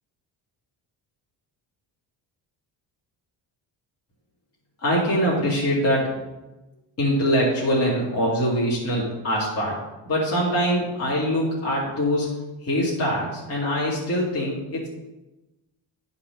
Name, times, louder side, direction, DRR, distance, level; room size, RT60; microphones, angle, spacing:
voice 1, 4.8-6.2 7.0-9.8 10.1-14.9, equal, 35° left, -6 dB, 2.4 m, -23 dB
10.5 x 4.3 x 5.4 m, 1.0 s
cardioid pair, 170°, 43 cm